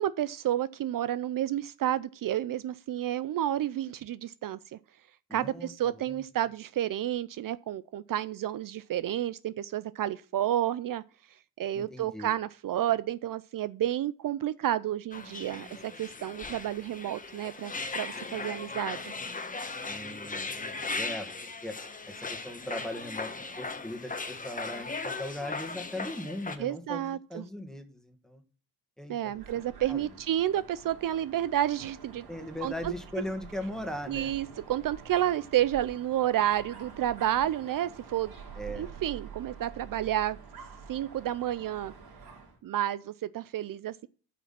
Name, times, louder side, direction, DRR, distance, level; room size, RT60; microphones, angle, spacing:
voice 1, 0.0-4.8 5.3-11.0 11.6-19.1 26.6-27.4 29.1-32.3 32.6-32.9 34.1-38.3 38.7-40.4 40.9-41.9 42.6-44.1, right 12 dB, 65° right, 0.5 m, -30 dB
voice 2, 5.3-6.2 11.7-12.3 19.9-21.3 21.6-21.7 22.1-28.4 29.0-29.4 29.9-30.1 32.3-34.3 38.5-38.9, left 1 dB, ahead, 1.7 m, -39 dB
sound 1, 15.1-26.6, left 3 dB, 20° left, 1.2 m, -38 dB
Dog, 29.3-42.6, right 5 dB, 85° right, 3.8 m, -47 dB
9.3 x 5.9 x 5.8 m
wide cardioid pair, 130°, 36 cm